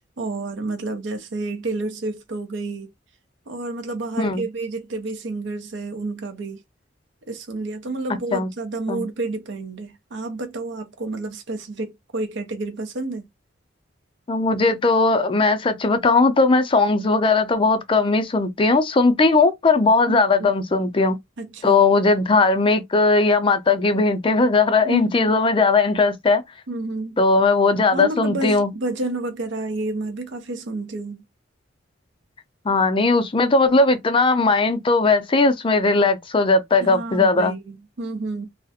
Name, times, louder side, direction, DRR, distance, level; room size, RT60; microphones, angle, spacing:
voice 1, 0.2-2.9 3.5-6.6 7.3-13.3 20.1-20.5 21.4-21.8 24.8-25.3 26.7-27.2 27.9-31.2 36.8-38.5, right 2 dB, 70° right, 0.6 m, -30 dB
voice 2, 14.3-21.2 21.6-26.4 27.2-28.7 32.7-37.6, left 3 dB, 25° left, 0.4 m, -18 dB
2.4 x 2.0 x 2.7 m
head